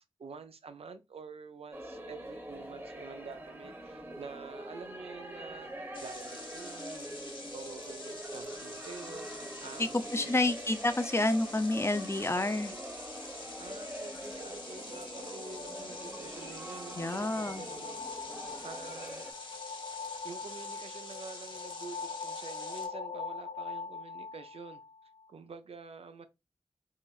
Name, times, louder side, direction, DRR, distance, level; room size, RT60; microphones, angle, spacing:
voice 1, 0.2-5.7 6.0-7.1 7.5-10.5 13.6-18.3 18.6-19.2 20.2-24.8 25.3-26.3, right 4 dB, 85° right, 0.4 m, -47 dB
sound 1, 1.7-19.3, right 1 dB, 25° right, 0.9 m, -44 dB
sound 2, 5.9-22.9, left 2 dB, 50° left, 1.1 m, -47 dB
voice 2, 9.8-12.7 16.9-17.6, left 2 dB, 25° left, 0.5 m, -29 dB
sound 3, 13.6-25.3, left 5 dB, 85° left, 0.5 m, -43 dB
3.7 x 2.1 x 2.3 m
cardioid pair, 45°, 10 cm